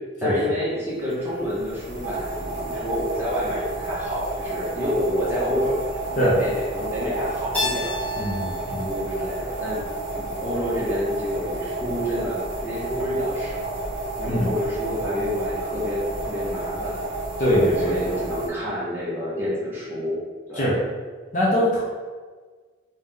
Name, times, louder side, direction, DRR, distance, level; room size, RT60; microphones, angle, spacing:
voice 1, 0.2-8.3 8.8-9.8 10.1-13.8 14.2-17.0 17.5-20.2 20.5-20.7, equal, 10° right, -8 dB, 1.1 m, -28 dB
sound 1, 1.1-18.5, right 2 dB, 60° right, 1.0 m, -31 dB
Keyboard (musical), 7.5-10.4, left 2 dB, 5° left, 0.5 m, -32 dB
voice 2, 8.2-8.9 14.3-14.5 17.4-17.9 20.5-20.8 21.3-21.8, equal, 40° left, -6 dB, 0.7 m, -22 dB
3.5 x 2.8 x 3.5 m, 1.5 s
head